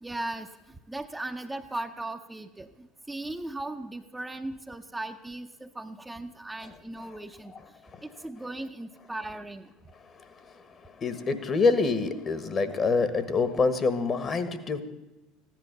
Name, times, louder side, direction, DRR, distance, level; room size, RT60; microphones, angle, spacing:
voice 1, 0.0-7.5 8.0-9.7, right 2 dB, 10° right, 5 dB, 0.9 m, -38 dB
voice 2, 10.0-14.8, left 4 dB, 35° left, 12 dB, 1.4 m, -27 dB
15.5 x 11.0 x 6.8 m, 0.97 s
figure-of-eight pair, 70°, 0 cm